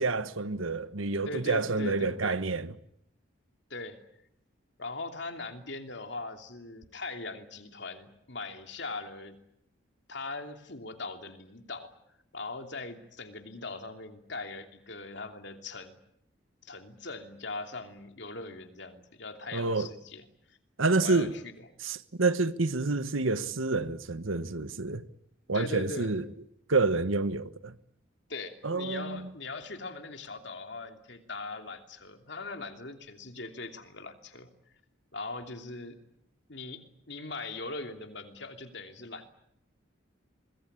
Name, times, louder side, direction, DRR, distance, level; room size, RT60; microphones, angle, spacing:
voice 1, 0.0-2.7 19.5-19.9 20.8-21.3 21.8-25.1 25.5-26.2 26.7-27.7 28.6-29.3, right 3 dB, 80° right, 1.3 m, -28 dB
voice 2, 1.2-2.4 3.7-4.0 4.8-9.4 10.1-11.9 12.3-16.0 16.6-20.2 21.0-21.5 25.5-26.1 28.3-34.5 35.1-36.0 36.5-39.3, left 3 dB, 60° left, 2.9 m, -40 dB
25.5 x 22.0 x 8.6 m
head